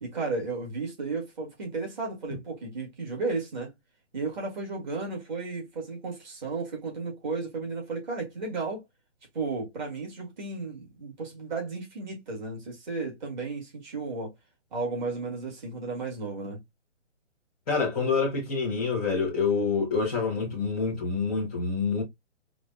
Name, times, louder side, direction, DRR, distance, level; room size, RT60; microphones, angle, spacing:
voice 1, 0.0-3.7 4.1-8.8 9.3-14.3 14.7-16.6, right 3 dB, 40° right, 1.6 m, -34 dB
voice 2, 17.7-22.0, left 5 dB, ahead, 0.5 m, -27 dB
4.8 x 2.0 x 2.5 m
hypercardioid pair, 160°, 37 cm